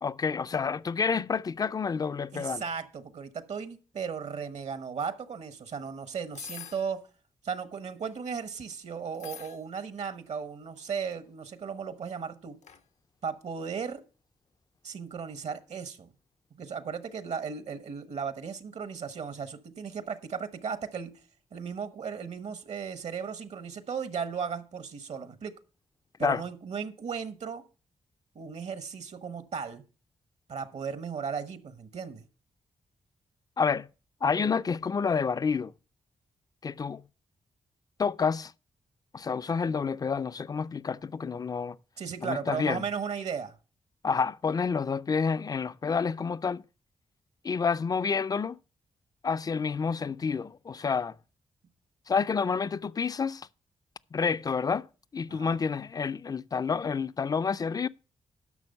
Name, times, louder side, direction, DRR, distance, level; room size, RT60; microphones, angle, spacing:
voice 1, 0.0-2.6 26.2-26.4 33.6-33.9 34.2-35.7 36.6-37.0 38.0-38.5 39.1-41.8 42.2-42.8 44.0-46.6 47.4-48.6 49.2-51.1 52.1-53.5 54.1-54.9 55.1-57.9, left 5 dB, 30° left, 0.4 m, -29 dB
voice 2, 2.3-7.0 7.4-12.6 13.2-14.0 14.8-16.1 16.6-21.1 21.5-25.5 26.2-27.6 28.3-29.8 30.5-32.2 42.0-43.5 55.3-55.6, right 6 dB, 65° right, 1.1 m, -36 dB
sound 1, 6.3-6.9 7.8-8.2 9.1-9.6 10.8-11.1 12.6-12.8, left 9 dB, 75° left, 0.6 m, -45 dB
11.0 x 6.1 x 5.4 m
cardioid pair, 75°, 12 cm